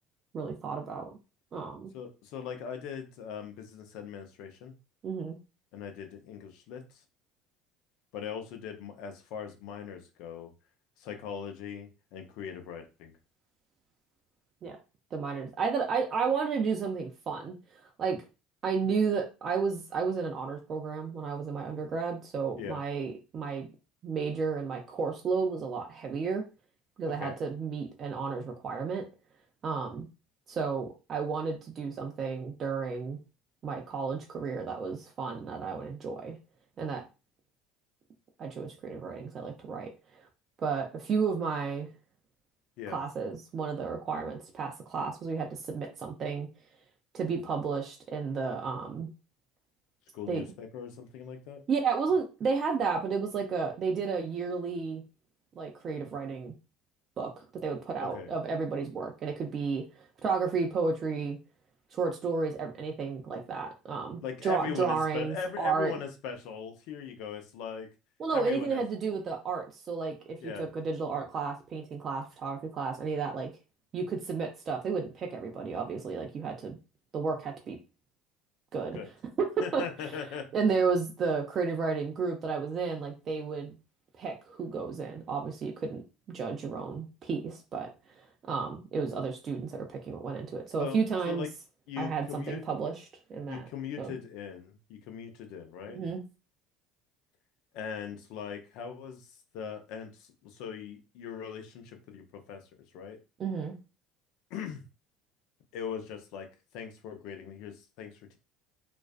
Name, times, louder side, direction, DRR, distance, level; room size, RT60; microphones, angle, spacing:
voice 1, 0.3-1.1 1.5-1.9 5.0-5.4 14.6-14.8 15.1-17.6 18.0-18.2 18.6-23.7 24.0-26.4 27.0-29.0 29.6-30.1 30.5-33.2 33.6-36.4 36.8-37.0 38.4-39.9 40.6-41.9 42.9-46.5 47.1-49.1 50.3-50.4 51.7-55.0 55.6-56.5 57.2-61.4 61.9-65.9 68.2-73.5 73.9-76.8 77.1-77.8 78.7-79.0 79.4-79.5 79.7-79.8 80.5-83.8 84.2-86.0 86.3-87.9 88.2-91.5 92.0-92.9 93.3-93.7 94.0-94.1 95.9-96.2 103.4-103.7, right 5 dB, 45° right, 1 dB, 0.5 m, -32 dB
voice 2, 1.9-4.7 5.7-7.0 8.1-10.5 11.0-13.1 22.6-22.8 27.1-27.4 42.8-43.0 50.1-51.6 58.0-58.3 64.2-67.9 68.3-68.8 70.4-70.7 78.9-79.1 79.6-80.5 90.8-91.0 91.3-91.5 91.9-92.8 93.4-96.0 97.7-102.6 102.9-103.2 104.5-104.8 105.7-106.5 106.7-108.4, left 7 dB, 65° left, 6 dB, 0.5 m, -40 dB
2.4 x 2.2 x 2.4 m, 0.30 s
hypercardioid pair, 75°, 0 cm